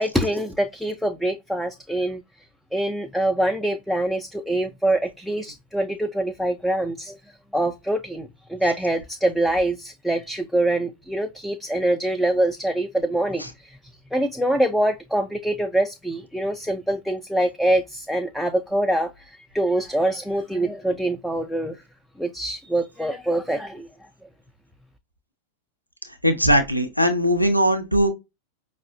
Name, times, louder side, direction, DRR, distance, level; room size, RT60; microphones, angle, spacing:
voice 1, 0.0-2.2 2.7-7.2 7.5-13.8 14.1-21.8 22.2-23.9, right 1 dB, ahead, 0.3 m, -24 dB
voice 2, 26.2-28.1, equal, 90° left, 0.5 m, -20 dB
5.2 x 2.0 x 2.5 m
figure-of-eight pair, 90°, 0 cm